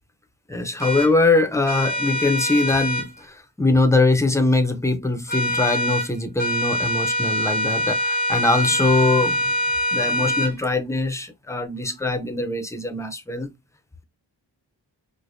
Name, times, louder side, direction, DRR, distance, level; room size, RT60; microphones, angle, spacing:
voice 1, 0.5-9.5 9.9-13.5, left 2 dB, 5° left, 0.5 m, -22 dB
sound 1, 0.8-1.1 1.7-3.1 5.3-6.1 6.4-10.5, equal, 40° right, 1.7 m, -24 dB
4.8 x 2.1 x 2.5 m
wide cardioid pair, 65°, 43 cm